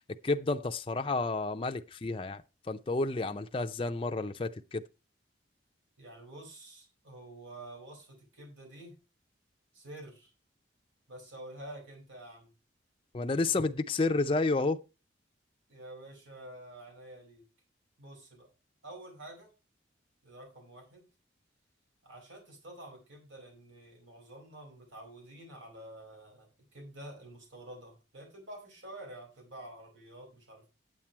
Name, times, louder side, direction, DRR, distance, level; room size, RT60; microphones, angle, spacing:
voice 1, 0.2-2.4 2.7-4.8 13.1-14.8, left 3 dB, 30° left, 0.5 m, -30 dB
voice 2, 6.0-9.0 9.7-10.3 11.1-12.5 15.7-17.4 18.0-18.5 18.8-19.5 20.2-21.0 22.0-30.7, right 1 dB, 80° right, 4.6 m, -49 dB
9.3 x 7.4 x 4.5 m
head